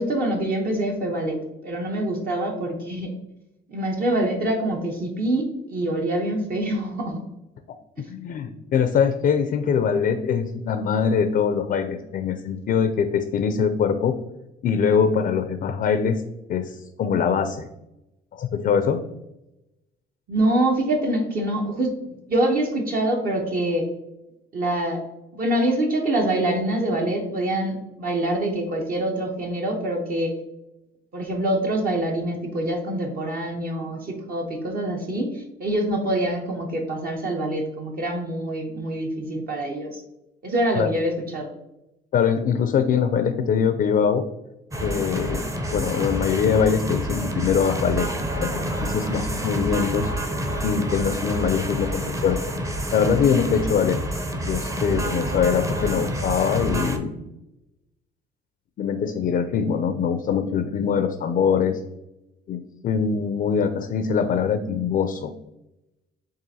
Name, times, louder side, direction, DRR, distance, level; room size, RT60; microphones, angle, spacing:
voice 1, 0.0-3.1 3.7-7.2 8.0-8.1 20.3-22.0 22.3-23.9 24.5-25.0 25.3-30.3 31.1-40.0 40.4-41.5, right 1 dB, 50° right, 1 dB, 0.8 m, -25 dB
voice 2, 8.1-14.1 14.6-16.2 16.5-17.7 18.3-19.0 40.7-40.9 42.1-44.2 44.8-45.4 45.7-48.1 48.4-50.1 50.6-52.5 52.9-54.0 54.5-57.1 58.8-61.8 62.5-65.3, left 7 dB, 45° left, 8 dB, 0.4 m, -23 dB
sound 1, 44.7-57.0, right 1 dB, 15° right, 0.6 m, -28 dB
7.4 x 2.5 x 2.7 m, 0.91 s
cardioid pair, 95°, 20 cm